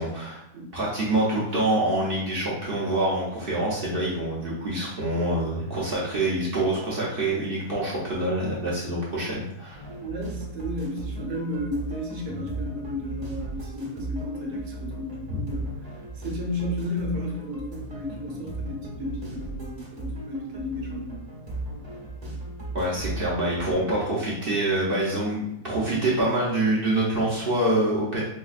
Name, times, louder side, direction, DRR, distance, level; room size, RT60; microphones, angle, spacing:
voice 1, 0.0-0.4 0.7-9.8 15.3-15.4 22.7-28.2, right 1 dB, 55° right, -6 dB, 0.6 m, -26 dB
sound 1, 9.7-23.7, right 1 dB, 30° right, 0.9 m, -36 dB
voice 2, 10.0-21.2, left 1 dB, 75° right, 0 dB, 1.1 m, -33 dB
4.8 x 2.2 x 2.4 m, 0.83 s
omnidirectional pair, 1.7 m